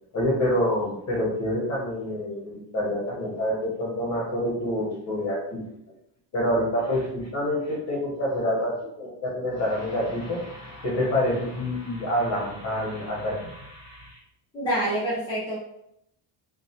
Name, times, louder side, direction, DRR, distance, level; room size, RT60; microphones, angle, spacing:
voice 1, 0.1-5.6 6.3-14.2, left 1 dB, 35° left, -3 dB, 0.8 m, -27 dB
voice 2, 14.5-15.6, right 1 dB, 10° left, -9 dB, 0.4 m, -26 dB
2.3 x 2.1 x 2.7 m, 0.77 s
cardioid pair, 170°, 44 cm